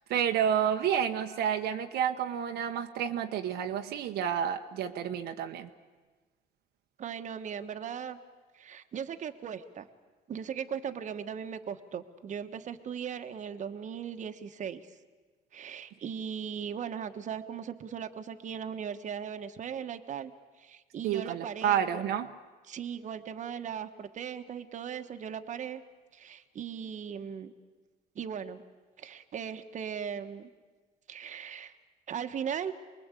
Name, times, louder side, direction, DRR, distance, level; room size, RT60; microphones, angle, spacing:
voice 1, 0.1-5.7 21.0-22.3, right 9 dB, 75° right, 5 dB, 1.1 m, -30 dB
voice 2, 7.0-8.2 8.5-9.9 10.3-14.9 15.5-20.3 20.6-22.0 22.7-25.8 26.1-27.5 28.1-28.6 29.0-30.5 31.1-31.7 32.1-32.7, right 8 dB, 45° right, 8 dB, 1.3 m, -38 dB
25.0 x 21.0 x 8.3 m, 1.4 s
cardioid pair, 110°, 17 cm